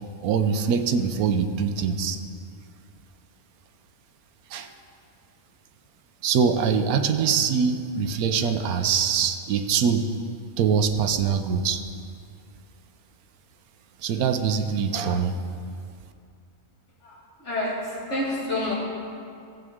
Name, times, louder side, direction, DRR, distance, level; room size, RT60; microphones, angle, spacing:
voice 1, 0.2-2.2 4.5-4.7 6.2-10.1 10.6-11.8 14.0-15.3, right 6 dB, 90° right, 8 dB, 1.2 m, -23 dB
voice 2, 17.0-18.7, left 1 dB, 55° left, -5 dB, 2.4 m, -29 dB
15.5 x 7.8 x 3.6 m, 2.3 s
omnidirectional pair, 1.5 m